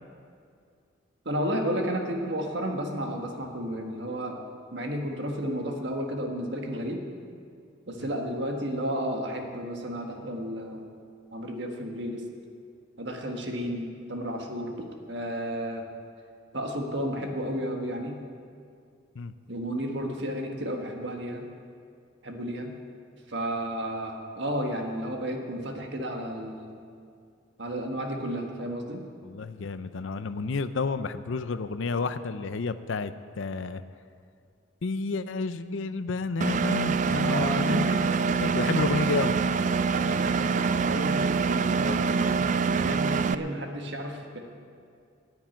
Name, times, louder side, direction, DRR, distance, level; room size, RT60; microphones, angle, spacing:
voice 1, 1.2-4.4 4.7-7.0 7.9-10.9 11.3-12.2 13.0-15.8 16.5-18.2 19.5-21.4 22.2-22.7 23.3-26.8 27.6-29.0 37.2-38.2 39.9-44.4, equal, 60° right, 3 dB, 1.5 m, -32 dB
voice 2, 29.2-33.8 34.8-37.9 38.2-39.3, left 4 dB, 75° left, 12 dB, 0.6 m, -30 dB
Engine, 36.4-43.4, right 5 dB, 40° right, 0.3 m, -25 dB
10.0 x 9.8 x 9.1 m, 2.3 s
head